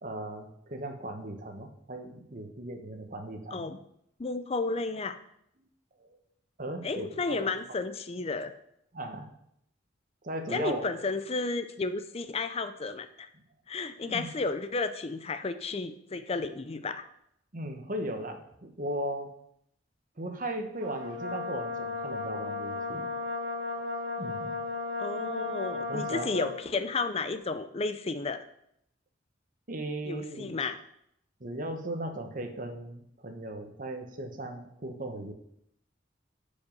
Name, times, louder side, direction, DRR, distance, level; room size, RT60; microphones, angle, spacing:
voice 1, 0.0-3.7 6.0-6.2 6.6-7.5 8.9-9.3 10.2-10.9 14.1-14.3 17.5-19.3 20.2-23.1 24.2-24.5 25.9-26.3 29.7-30.5 31.4-35.3, right 1 dB, 45° right, 5 dB, 1.3 m, -37 dB
voice 2, 4.2-5.2 6.8-8.5 10.5-13.3 13.7-17.0 25.0-28.4 30.0-30.8, left 3 dB, 35° left, 10 dB, 0.5 m, -32 dB
Brass instrument, 20.8-26.6, left 3 dB, 75° right, 1.5 m, -35 dB
12.5 x 5.4 x 5.4 m, 0.75 s
head